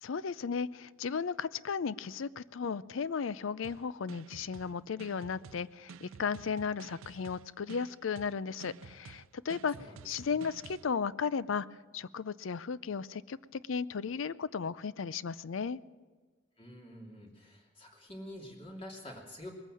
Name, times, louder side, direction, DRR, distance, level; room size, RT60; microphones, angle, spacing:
voice 1, 0.0-9.8 10.0-11.7 11.9-15.8, left 6 dB, 80° left, 18 dB, 0.5 m, -35 dB
sound 1, 3.6-10.9, right 5 dB, 90° right, 0.5 m, -51 dB
voice 2, 9.8-10.1 10.3-10.4 16.6-19.5, left 1 dB, 30° left, 1 dB, 2.8 m, -47 dB
20.5 x 9.1 x 7.6 m, 1.4 s
head